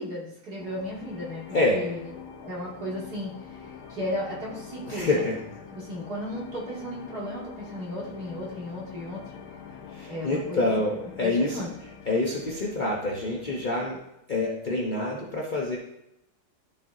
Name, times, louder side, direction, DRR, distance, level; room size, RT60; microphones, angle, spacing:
voice 1, 0.0-2.0 2.4-5.3 5.7-9.2 10.1-10.9 11.2-11.7, equal, 50° right, -6 dB, 2.6 m, -35 dB
sound 1, 0.6-13.9, left 7 dB, 80° left, 1.7 m, -45 dB
voice 2, 1.5-1.8 4.9-5.4 9.9-11.7 12.1-14.0 14.3-15.8, left 2 dB, 65° left, -4 dB, 0.4 m, -26 dB
12.0 x 4.3 x 3.7 m, 0.86 s
omnidirectional pair, 2.3 m